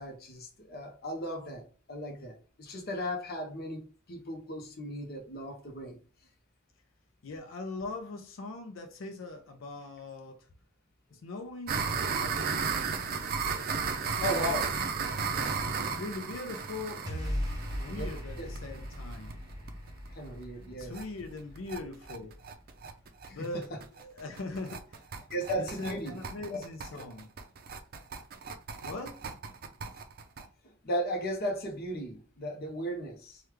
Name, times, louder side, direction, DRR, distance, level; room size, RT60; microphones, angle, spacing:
voice 1, 0.0-6.0 14.2-14.7 17.9-18.1 18.4-18.5 20.1-20.9 23.3-23.4 25.3-26.2 26.5-26.6 26.9-27.0 30.8-33.4, equal, 50° left, 0.8 m, -36 dB
voice 2, 7.2-10.5 11.1-13.0 14.1-14.6 15.8-19.3 20.7-22.4 23.3-23.8 24.1-25.1 25.6-27.3 28.8-29.3, left 3 dB, 70° left, 0.5 m, -41 dB
sound 1, 11.7-19.3 19.7-19.8 20.1-20.2 20.4-20.5 20.8-21.0 21.4-30.5, right 5 dB, 45° right, 0.4 m, -34 dB
sound 2, 17.1-23.5, equal, 20° right, 0.9 m, -39 dB
3.2 x 2.3 x 3.2 m
head